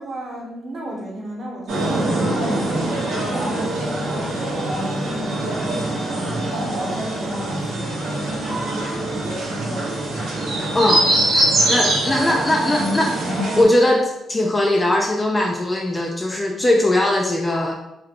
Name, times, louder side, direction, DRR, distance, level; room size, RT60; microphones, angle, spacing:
voice 1, 0.0-9.3, equal, 45° right, -3 dB, 1.0 m, -35 dB
sound 1, 1.7-13.6, right 1 dB, 80° right, 1.4 m, -23 dB
voice 2, 10.7-11.1 11.7-13.2 13.6-17.7, left 1 dB, 20° left, 1 dB, 0.4 m, -19 dB
3.7 x 2.2 x 3.0 m, 0.89 s
cardioid pair, 90°, 0 cm